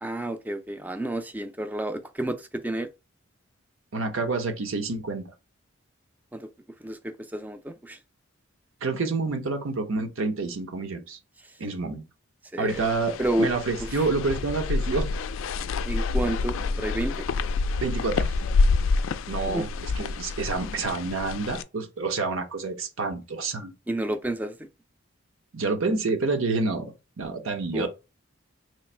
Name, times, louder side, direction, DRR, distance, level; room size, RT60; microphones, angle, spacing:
voice 1, 0.0-2.9 6.3-6.5 6.8-8.0 12.5-12.8 13.2-13.5 15.8-17.2 19.5-19.7 23.9-24.6 27.7-27.9, right 1 dB, 10° right, 0.4 m, -30 dB
voice 2, 3.9-5.3 8.8-11.2 11.6-12.0 12.6-15.1 17.8-18.3 19.3-23.7 25.5-26.9 27.2-27.9, right 3 dB, 75° right, 0.8 m, -28 dB
sound 1, 12.7-21.6, left 3 dB, 70° left, 0.3 m, -27 dB
3.1 x 2.5 x 4.2 m
head